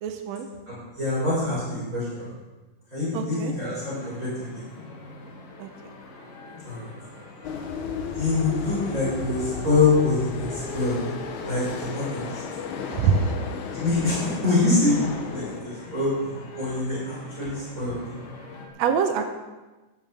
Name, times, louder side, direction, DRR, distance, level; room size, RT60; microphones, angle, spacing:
voice 1, 0.0-0.5 3.1-3.5 5.6-5.7 12.9-13.3 18.8-19.3, right 6 dB, 70° right, 5 dB, 1.7 m, -24 dB
voice 2, 0.7-2.3 2.9-4.6 6.6-6.9 8.1-11.0 11.4-12.2 13.7-16.1 16.6-18.0, left 3 dB, 25° right, -9 dB, 5.3 m, -25 dB
sound 1, 3.6-18.7, left 3 dB, 90° left, 3.3 m, -43 dB
sound 2, 7.4-15.6, left 5 dB, 70° left, 2.3 m, -34 dB
16.0 x 11.0 x 3.5 m, 1.2 s
omnidirectional pair, 3.7 m